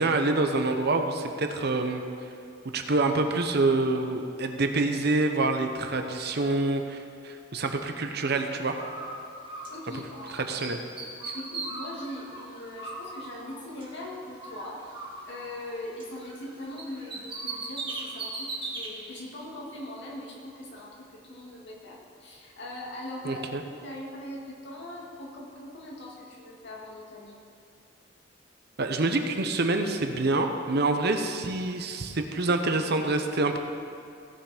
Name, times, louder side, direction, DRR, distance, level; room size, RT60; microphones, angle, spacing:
voice 1, 0.0-2.0 2.7-8.8 10.3-10.8 11.3-11.4 23.2-23.6 28.8-33.6, right 2 dB, 60° right, 5 dB, 0.8 m, -26 dB
Bird, 8.7-10.3 10.6-14.0 14.4-16.5 16.8-18.9, right 3 dB, 25° right, 1.8 m, -38 dB
voice 2, 9.7-10.4 11.3-14.8 15.2-27.4, left 1 dB, 65° left, -3 dB, 2.2 m, -41 dB
16.5 x 5.8 x 5.0 m, 2.5 s
head